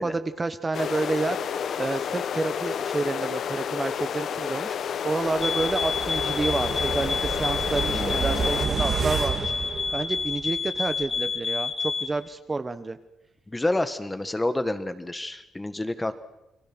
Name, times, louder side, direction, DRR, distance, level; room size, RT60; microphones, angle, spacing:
voice 1, 0.0-1.4 1.8-9.5 9.9-13.0, right 3 dB, 25° right, 10 dB, 1.2 m, -29 dB
sound 1, 0.7-8.7, left 8 dB, 60° left, 0.9 m, -30 dB
sound 2, 5.4-12.2, left 5 dB, 30° left, 1.0 m, -29 dB
sound 3, 5.4-10.6 10.9-11.0, right 6 dB, 50° right, 2.6 m, -31 dB
voice 2, 7.9-8.2 13.5-16.1, left 1 dB, 15° left, 10 dB, 1.7 m, -29 dB
29.5 x 20.5 x 6.3 m, 0.90 s
cardioid pair, 90°, 0 cm